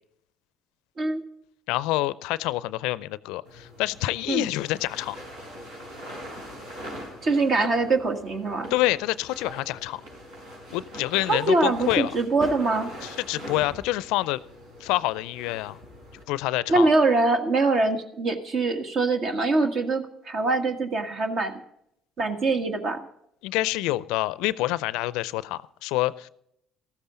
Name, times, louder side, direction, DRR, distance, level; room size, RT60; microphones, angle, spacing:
voice 1, 1.7-5.2 7.6-7.7 8.7-10.0 10.7-12.1 13.0-14.4 14.8-15.8 16.3-16.9 23.4-26.3, left 17 dB, 70° left, 19 dB, 0.4 m, -27 dB
sound 1, 3.4-16.2, equal, 80° right, 5.5 m, -42 dB
voice 2, 7.2-8.7 11.3-12.9 16.7-21.5 22.2-23.0, right 3 dB, 55° right, 5 dB, 1.6 m, -23 dB
14.5 x 13.0 x 3.8 m, 0.75 s
hypercardioid pair, 55°, 0 cm